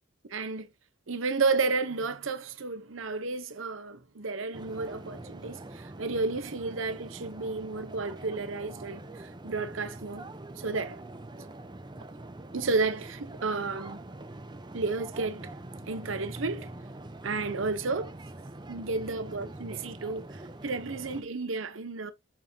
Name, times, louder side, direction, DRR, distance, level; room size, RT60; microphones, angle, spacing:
voice 1, 0.3-0.7 1.1-10.3 10.6-11.0 12.5-14.0 14.7-15.5 15.9-16.7 17.2-18.1 18.7-22.1, right 3 dB, 75° right, 0.8 m, -32 dB
sound 1, 4.5-21.2, right 2 dB, 20° right, 0.6 m, -44 dB
6.6 x 5.8 x 2.7 m
head